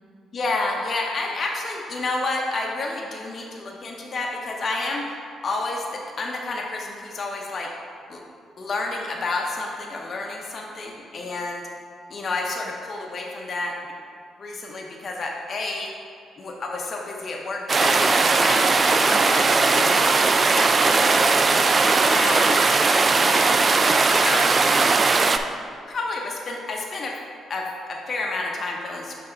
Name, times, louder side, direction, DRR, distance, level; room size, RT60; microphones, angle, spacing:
voice 1, 0.3-7.7 8.1-8.2 8.6-11.6 12.1-13.9 14.4-15.9 16.4-20.1 20.4-23.5 24.1-24.5 25.9-27.2 27.5-29.1, left 2 dB, 45° left, 0 dB, 0.8 m, -30 dB
sound 1, 17.7-25.4, right 4 dB, 35° right, 0.3 m, -18 dB
8.9 x 3.4 x 3.9 m, 2.4 s
cardioid pair, 90°, 0 cm